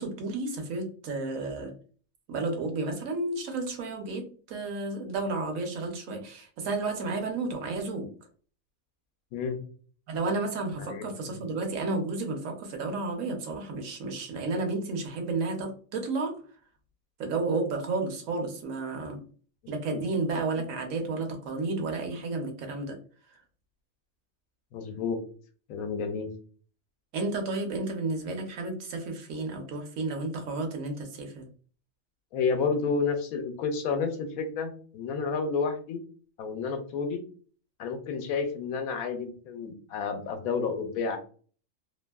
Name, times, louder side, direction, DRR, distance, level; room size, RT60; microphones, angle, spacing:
voice 1, 0.0-1.7 2.3-8.1 10.1-16.3 17.2-19.2 19.7-23.0 27.1-31.5, right 3 dB, 70° right, 4 dB, 1.1 m, -32 dB
voice 2, 10.8-11.4 19.9-20.0 20.5-20.6 24.7-25.2 25.7-26.3 32.3-36.0 36.4-37.2 37.8-41.2, left 5 dB, 85° left, 6 dB, 1.1 m, -30 dB
2.8 x 2.6 x 2.2 m, 0.42 s
omnidirectional pair, 1.5 m